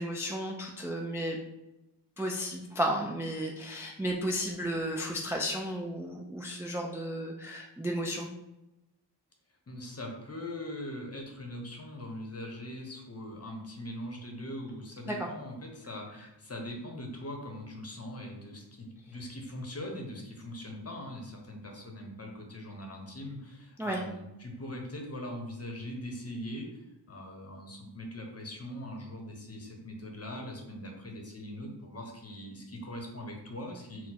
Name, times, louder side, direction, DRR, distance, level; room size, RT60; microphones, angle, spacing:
voice 1, 0.0-1.4 2.2-8.3 15.1-15.3 23.8-24.0, equal, 5° right, 0 dB, 0.3 m, -33 dB
voice 2, 9.7-34.1, left 1 dB, 35° left, 1 dB, 0.9 m, -41 dB
4.2 x 2.1 x 4.2 m, 0.94 s
wide cardioid pair, 90°, 43 cm